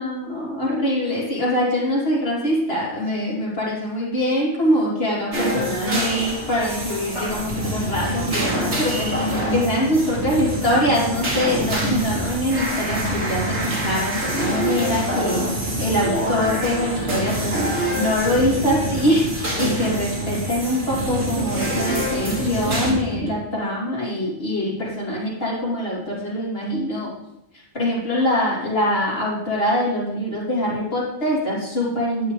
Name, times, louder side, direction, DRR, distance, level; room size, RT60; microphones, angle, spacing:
voice 1, 0.0-15.4 15.8-27.1 27.7-32.3, equal, 55° left, -6 dB, 3.2 m, -23 dB
sound 1, 5.3-22.9, right 1 dB, 65° right, 2.4 m, -27 dB
sound 2, 7.3-23.4, equal, 80° right, 2.4 m, -30 dB
10.5 x 8.0 x 3.3 m, 0.86 s
omnidirectional pair, 1.3 m